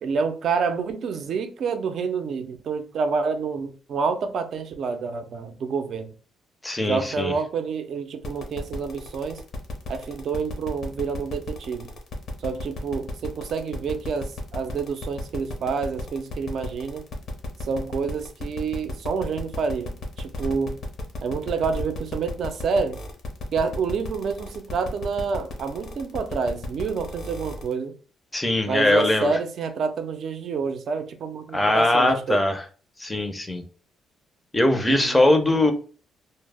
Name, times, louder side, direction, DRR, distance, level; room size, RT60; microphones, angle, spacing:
voice 1, 0.0-6.1 6.8-9.4 9.9-11.9 12.4-17.1 17.6-20.8 21.2-23.0 23.5-27.9 28.6-32.4 34.9-35.2, right 5 dB, 65° right, 0.4 m, -28 dB
voice 2, 6.6-7.3 28.3-29.4 31.5-32.6 33.0-33.6 34.5-35.7, left 1 dB, 15° left, 0.5 m, -21 dB
sound 1, 8.2-27.7, left 3 dB, 65° left, 0.7 m, -35 dB
2.0 x 2.0 x 3.3 m
cardioid pair, 90°, 0 cm